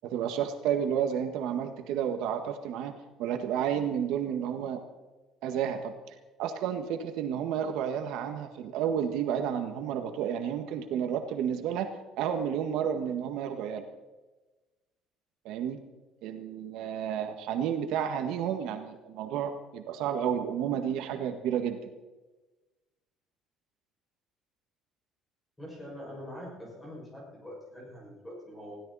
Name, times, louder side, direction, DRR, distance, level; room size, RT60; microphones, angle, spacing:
voice 1, 0.0-4.8 5.4-13.9 15.4-15.8 16.2-21.9, right 8 dB, 75° right, 6 dB, 1.7 m, -31 dB
voice 2, 25.6-28.8, equal, 5° left, -3 dB, 6.2 m, -44 dB
21.0 x 16.5 x 4.2 m, 1.2 s
cardioid pair, 175°, 0 cm